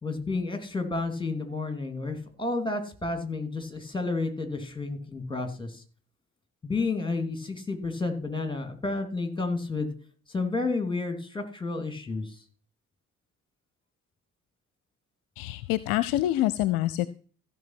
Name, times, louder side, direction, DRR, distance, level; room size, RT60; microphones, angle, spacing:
voice 1, 0.0-5.8 6.6-9.9 10.3-12.4, left 3 dB, 10° left, 7 dB, 3.1 m, -31 dB
voice 2, 15.4-17.1, left 14 dB, 55° left, 16 dB, 0.6 m, -26 dB
15.0 x 5.8 x 6.0 m, 0.41 s
figure-of-eight pair, 45°, 42 cm